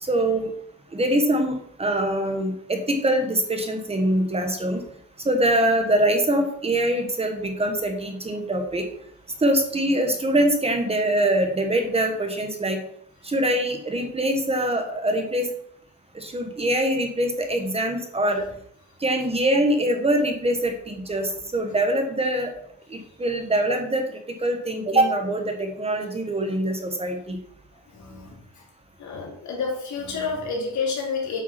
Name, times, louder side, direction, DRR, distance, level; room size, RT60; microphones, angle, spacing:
voice 1, 0.0-0.5 0.9-4.8 5.2-8.9 9.4-12.8 13.2-15.5 16.1-18.4 19.0-22.5 22.9-27.4, right 1 dB, 20° right, 4 dB, 1.3 m, -23 dB
voice 2, 27.9-28.3 29.0-31.4, left 4 dB, 70° left, -1 dB, 3.3 m, -29 dB
8.4 x 6.0 x 5.8 m, 0.68 s
wide cardioid pair, 165°, 30 cm